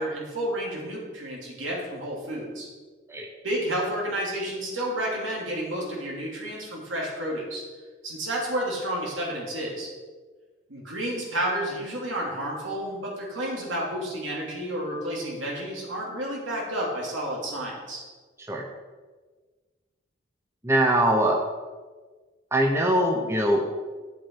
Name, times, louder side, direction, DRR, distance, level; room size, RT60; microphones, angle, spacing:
voice 1, 0.0-2.7 3.4-7.6 8.0-9.9 10.7-18.0, right 1 dB, 85° right, -3 dB, 2.8 m, -31 dB
voice 2, 20.6-21.4 22.5-23.8, right 1 dB, 15° right, 1 dB, 0.8 m, -22 dB
9.7 x 7.5 x 4.7 m, 1.4 s
head